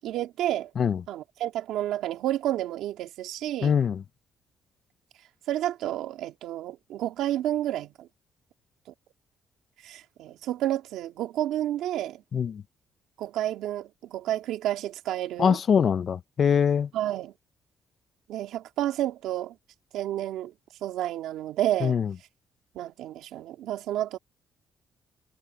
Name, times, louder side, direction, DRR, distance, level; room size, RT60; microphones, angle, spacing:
voice 1, 0.0-0.7 1.1-3.7 5.5-8.1 9.8-12.2 13.2-15.6 16.9-17.3 18.3-19.6 19.9-20.5 20.8-22.0 22.7-24.2, right 13 dB, 85° right, 2.3 m, -30 dB
voice 2, 3.6-4.0 12.3-12.6 15.4-16.9 21.8-22.1, left 7 dB, 55° left, 0.5 m, -23 dB
cardioid pair, 90°, 0 cm